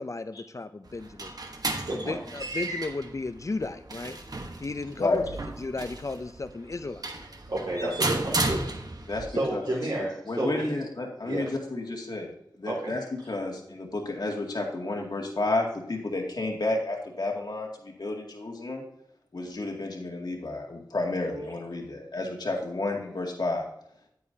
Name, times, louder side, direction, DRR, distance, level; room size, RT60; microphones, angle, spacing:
voice 1, 0.0-1.3 1.9-4.2 4.6-5.2 5.6-7.0, left 3 dB, 45° left, 10 dB, 0.4 m, -34 dB
sound 1, 0.8-9.3, right 2 dB, 60° right, 1.1 m, -34 dB
voice 2, 1.9-2.2 7.5-8.6 9.3-10.7 11.2-11.5 12.7-12.9 21.3-21.5, right 1 dB, 90° right, -4 dB, 2.3 m, -31 dB
voice 3, 5.0-5.3 9.1-9.6 10.3-12.3 12.6-13.0 13.3-18.8 19.3-23.7, left 2 dB, 70° left, 0 dB, 2.2 m, -31 dB
10.0 x 9.2 x 2.8 m, 0.75 s
wide cardioid pair, 70°, 7 cm